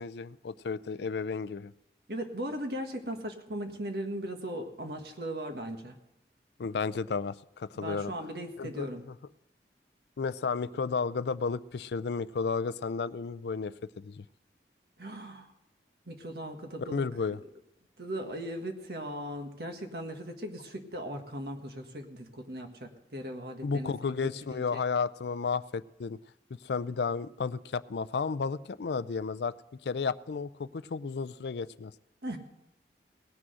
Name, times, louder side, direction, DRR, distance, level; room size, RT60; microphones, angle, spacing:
voice 1, 0.0-1.7 6.6-8.1 8.6-9.1 10.2-14.2 16.9-17.4 23.6-26.2 26.6-29.5 29.8-31.9, left 5 dB, 75° left, 17 dB, 0.4 m, -33 dB
voice 2, 2.1-6.0 7.7-9.0 15.0-15.5 16.1-17.0 18.0-24.1 24.5-24.8 32.2-32.4, equal, 65° right, 5 dB, 1.6 m, -38 dB
18.0 x 6.2 x 7.8 m, 0.89 s
head